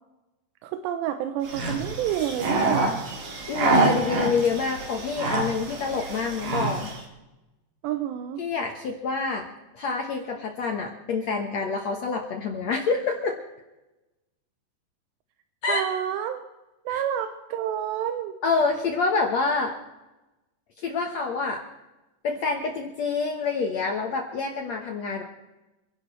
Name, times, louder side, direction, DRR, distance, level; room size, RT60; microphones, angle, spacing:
voice 1, 0.6-3.1 7.8-8.4 15.7-16.4 16.9-18.4, right 10 dB, 85° right, 7 dB, 2.9 m, -29 dB
sound 1, 1.4-7.0, right 3 dB, 55° right, 3.6 m, -26 dB
voice 2, 3.5-6.9 8.4-9.5 9.7-13.4 15.6-15.8 16.9-17.0 18.4-19.8 20.8-21.6 22.2-25.2, left 4 dB, 70° left, 3 dB, 1.6 m, -27 dB
28.5 x 11.5 x 3.3 m, 1.0 s
omnidirectional pair, 4.9 m